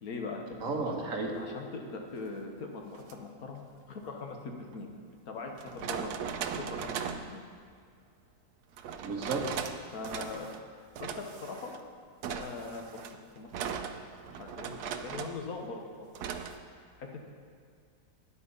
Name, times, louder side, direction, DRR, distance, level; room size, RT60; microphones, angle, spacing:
voice 1, 0.0-0.6 0.8-3.6 3.9-4.9 5.3-6.1 6.5-7.0 7.3-7.4 9.9-11.7 12.3-13.0 13.4-13.8 14.3-15.8 16.7-17.2, left 3 dB, 65° left, 2 dB, 1.5 m, -41 dB
voice 2, 0.6-1.3 9.0-9.4, right 4 dB, 55° right, 1 dB, 1.6 m, -33 dB
sound 1, 3.0-3.1 4.7-4.8 5.6-7.3 8.8-9.8 10.0-10.6 11.0-11.8 12.2-15.4 16.2-16.6, right 7 dB, 75° right, 1.2 m, -38 dB
10.0 x 8.4 x 5.5 m, 2.3 s
omnidirectional pair, 1.7 m